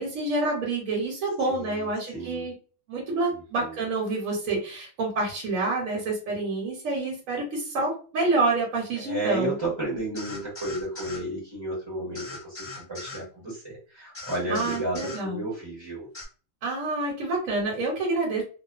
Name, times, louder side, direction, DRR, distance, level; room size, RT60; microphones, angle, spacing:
voice 1, 0.0-2.5 2.9-9.5 14.5-15.4 16.6-18.4, right 2 dB, 80° right, -2 dB, 1.1 m, -28 dB
voice 2, 1.4-2.5 3.3-3.7 9.0-16.1, right 1 dB, 25° right, -5 dB, 0.7 m, -32 dB
sound 1, 10.2-11.2 12.1-13.2 14.1-15.2 16.1-16.3, left 3 dB, 10° left, 0.8 m, -40 dB
2.4 x 2.2 x 2.3 m, 0.37 s
omnidirectional pair, 1.4 m